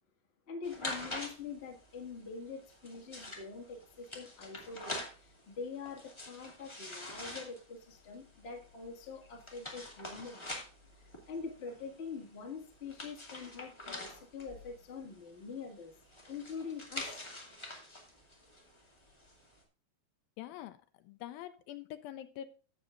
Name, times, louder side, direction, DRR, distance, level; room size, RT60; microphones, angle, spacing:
voice 1, 0.5-10.4 11.0-15.9 16.3-17.3, left 5 dB, 60° left, 0.6 m, -45 dB
sound 1, 0.6-19.6, left 1 dB, 15° left, 1.0 m, -46 dB
voice 2, 20.4-20.8 21.0-22.5, left 12 dB, 85° left, 2.1 m, -44 dB
16.0 x 7.3 x 2.4 m
omnidirectional pair, 4.6 m